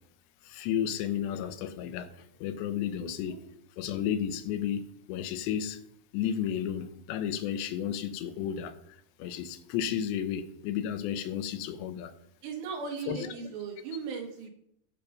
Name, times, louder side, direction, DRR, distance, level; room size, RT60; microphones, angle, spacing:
voice 1, 0.4-3.4 3.8-5.8 6.1-12.1 13.1-13.3, left 9 dB, 90° left, 10 dB, 3.2 m, -33 dB
voice 2, 3.0-3.4 12.4-14.5, right 5 dB, 80° right, 2 dB, 4.2 m, -38 dB
14.5 x 6.9 x 5.3 m, 0.72 s
omnidirectional pair, 4.9 m